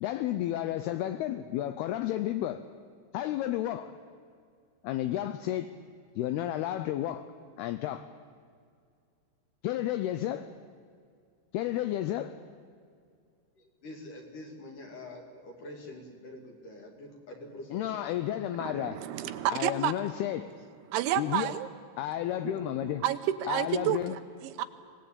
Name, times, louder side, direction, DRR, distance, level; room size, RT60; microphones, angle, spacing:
voice 1, 0.0-2.7 3.1-3.9 4.8-5.7 6.2-7.3 7.6-8.1 9.6-10.5 11.5-12.4 17.7-19.0 19.5-20.5 21.2-21.5 22.0-23.0 23.5-24.2, left 12 dB, 80° left, 10 dB, 2.3 m, -32 dB
voice 2, 13.8-18.1, left 1 dB, 50° left, 1 dB, 3.7 m, -45 dB
voice 3, 18.6-19.9 20.9-21.7 22.4-24.6, right 11 dB, 80° right, 10 dB, 3.2 m, -31 dB
25.0 x 18.5 x 8.7 m, 2.2 s
omnidirectional pair, 5.4 m